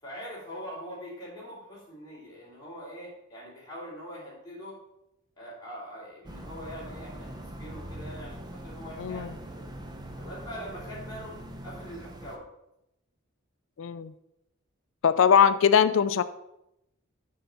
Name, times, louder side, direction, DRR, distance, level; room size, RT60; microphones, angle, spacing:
voice 1, 0.0-4.8 5.4-9.3 9.6-9.7 10.2-11.4 11.6-12.4, equal, 20° left, -6 dB, 3.1 m, -43 dB
sound 1, 6.2-12.4, right 1 dB, 20° right, 0.5 m, -42 dB
voice 2, 9.0-9.3 13.8-14.1 15.0-16.2, left 7 dB, 65° left, 14 dB, 0.4 m, -21 dB
6.7 x 5.6 x 5.3 m, 0.85 s
head